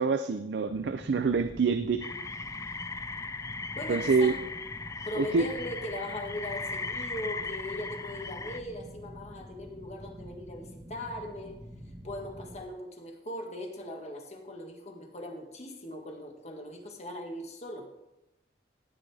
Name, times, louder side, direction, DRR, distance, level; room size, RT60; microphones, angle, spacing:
voice 1, 0.0-2.0 3.9-4.3 5.2-5.5, right 4 dB, 70° right, 9 dB, 0.5 m, -26 dB
sound 1, 0.7-12.6, equal, 20° right, 1.3 m, -47 dB
sound 2, 2.0-8.6, left 4 dB, 15° left, 0.3 m, -38 dB
voice 2, 3.7-4.4 5.0-11.6 12.0-17.9, left 1 dB, 40° left, 2 dB, 1.6 m, -39 dB
15.0 x 8.7 x 3.4 m, 0.94 s
head